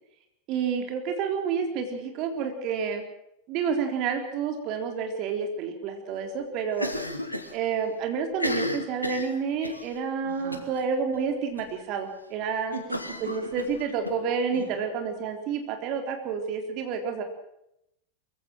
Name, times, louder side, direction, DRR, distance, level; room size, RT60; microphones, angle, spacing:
voice 1, 0.5-3.0 3.5-6.9 7.5-12.7 13.2-17.2, right 6 dB, 40° right, 5 dB, 3.9 m, -29 dB
Cough, 6.7-7.5 7.8-7.9 8.3-9.9 10.5-10.8 11.1-11.2 11.6-11.7 12.9-14.1, left 1 dB, 85° left, 2.4 m, -32 dB
voice 2, 10.2-10.7 12.7-13.5 14.5-14.8, right 6 dB, 65° right, 5 dB, 3.3 m, -40 dB
23.0 x 16.0 x 7.7 m, 0.79 s
figure-of-eight pair, 90°, 0 cm